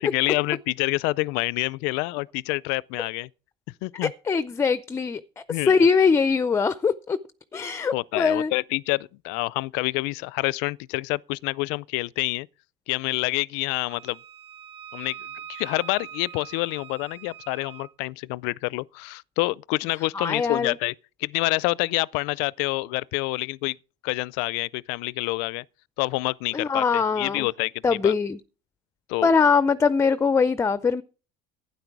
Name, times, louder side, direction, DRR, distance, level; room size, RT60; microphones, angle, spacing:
voice 1, 0.0-3.3 3.8-4.1 5.5-5.9 7.9-12.5 12.9-14.2 14.9-15.2 15.5-20.9 21.2-23.8 24.0-25.6 26.0-28.1 29.1-29.3, left 23 dB, 75° left, 0.4 m, -27 dB
voice 2, 4.0-5.2 5.7-7.2 7.5-8.5 20.1-20.8 26.5-27.5 27.8-28.4 29.2-31.0, left 5 dB, 15° left, 0.5 m, -22 dB
Wind instrument woodwind instrument, 13.9-17.9, right 9 dB, 30° right, 0.9 m, -43 dB
12.0 x 9.7 x 4.7 m
cardioid pair, 145°, 18 cm